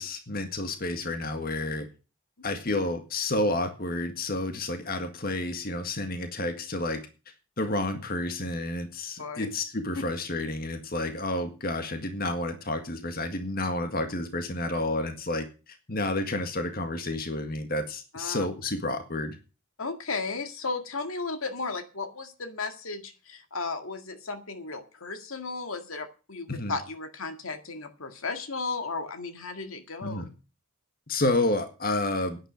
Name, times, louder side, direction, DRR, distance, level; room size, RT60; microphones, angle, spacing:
voice 1, 0.0-1.9 2.4-7.0 7.6-19.4 26.5-26.8 30.0-30.3 31.1-32.4, left 2 dB, 45° left, 7 dB, 1.8 m, -30 dB
voice 2, 18.1-18.5 19.8-30.2, left 4 dB, 80° left, 7 dB, 2.0 m, -35 dB
11.0 x 10.0 x 6.5 m, 0.33 s
head